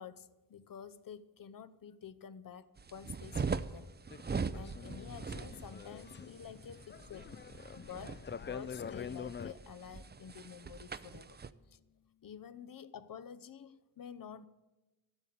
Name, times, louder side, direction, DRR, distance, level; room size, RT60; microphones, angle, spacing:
voice 1, 0.0-3.9 4.5-7.3 7.8-11.4 11.7-11.8 12.2-14.5, left 7 dB, 65° left, 14 dB, 0.8 m, -49 dB
sound 1, 2.8-11.5, right 5 dB, 30° right, 0.5 m, -41 dB
sound 2, 4.1-9.5, left 7 dB, 30° left, 0.4 m, -46 dB
sound 3, 7.9-12.8, left 6 dB, 60° right, 1.5 m, -72 dB
12.5 x 8.8 x 8.6 m, 1.1 s
wide cardioid pair, 75°, 36 cm